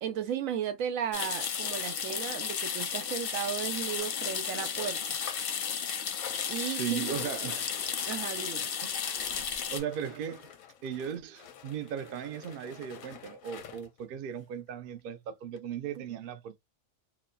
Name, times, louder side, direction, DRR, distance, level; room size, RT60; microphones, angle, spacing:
voice 1, 0.0-5.2 6.5-7.0 8.1-8.7 16.0-16.2, right 9 dB, 85° right, 1.0 m, -35 dB
sound 1, 1.1-9.8, left 7 dB, 60° left, 0.6 m, -34 dB
sound 2, 4.0-5.6 5.8-14.0 14.7-14.8 15.0-15.1 15.6-15.7, left 9 dB, 90° left, 1.0 m, -49 dB
voice 2, 6.7-7.8 8.8-10.5 10.8-16.6, right 9 dB, 65° right, 0.5 m, -37 dB
2.8 x 2.0 x 2.3 m
omnidirectional pair, 1.4 m